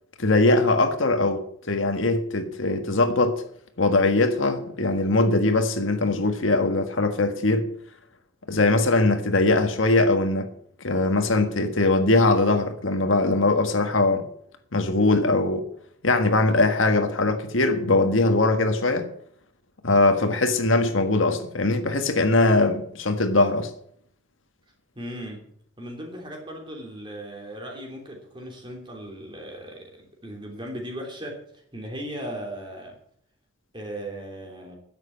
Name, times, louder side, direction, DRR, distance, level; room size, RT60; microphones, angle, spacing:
voice 1, 0.2-3.4 3.8-7.7 8.5-10.5 10.8-14.3 14.7-15.7 16.0-19.1 19.8-23.7, left 2 dB, 85° left, 1.5 m, -21 dB
voice 2, 24.9-25.5 25.8-31.4 31.7-33.0 33.7-34.8, right 1 dB, 25° right, 3.0 m, -37 dB
10.5 x 7.7 x 8.6 m
head